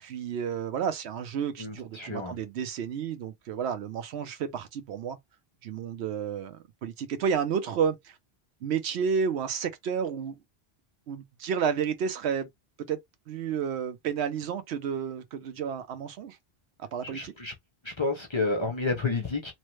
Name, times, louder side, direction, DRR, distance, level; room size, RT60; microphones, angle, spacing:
voice 1, 0.0-5.2 5.6-8.2 8.6-10.4 11.1-12.5 12.8-13.0 13.3-16.4 16.8-17.3, right 7 dB, 90° right, 0.9 m, -31 dB
voice 2, 1.6-2.4 17.0-17.5 17.8-19.5, left 3 dB, 35° left, 0.5 m, -30 dB
3.1 x 2.1 x 3.0 m
omnidirectional pair, 1.1 m